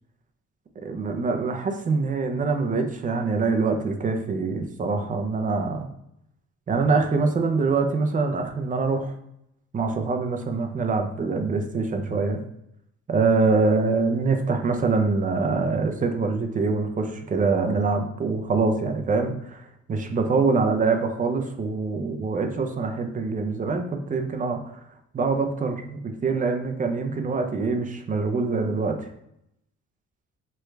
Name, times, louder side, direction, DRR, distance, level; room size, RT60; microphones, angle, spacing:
voice 1, 0.8-5.9 6.7-9.1 9.7-12.4 13.1-24.8 25.1-29.1, right 4 dB, 25° right, 5 dB, 0.5 m, -24 dB
3.2 x 2.3 x 3.2 m, 0.79 s
cardioid pair, 90°, 30 cm